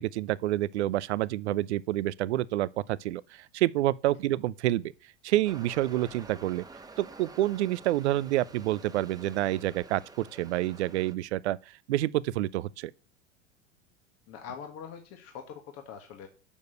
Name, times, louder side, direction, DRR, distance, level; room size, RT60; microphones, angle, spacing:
voice 1, 0.0-4.9 5.2-6.6 7.0-12.9, right 15 dB, 70° right, 0.6 m, -28 dB
sound 1, 5.4-11.1, right 3 dB, 10° right, 1.3 m, -49 dB
voice 2, 14.3-16.3, left 7 dB, 45° left, 1.7 m, -43 dB
7.1 x 6.5 x 7.9 m
hypercardioid pair, 85°, 35 cm